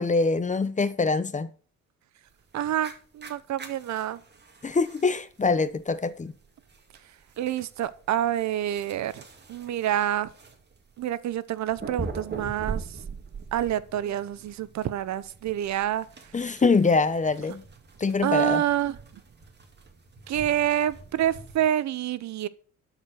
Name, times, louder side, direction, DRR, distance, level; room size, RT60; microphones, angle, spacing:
voice 1, 0.0-1.5 4.6-6.3 16.3-17.6 18.0-18.6, left 4 dB, 25° left, 0.8 m, -24 dB
sound 1, 2.3-21.7, right 4 dB, 35° right, 2.3 m, -43 dB
voice 2, 2.5-4.2 7.4-9.2 9.5-10.3 11.0-12.8 13.5-16.0 18.2-19.0 20.3-22.5, right 11 dB, 65° right, 0.8 m, -27 dB
11.5 x 5.0 x 6.5 m
cardioid pair, 90°, 30 cm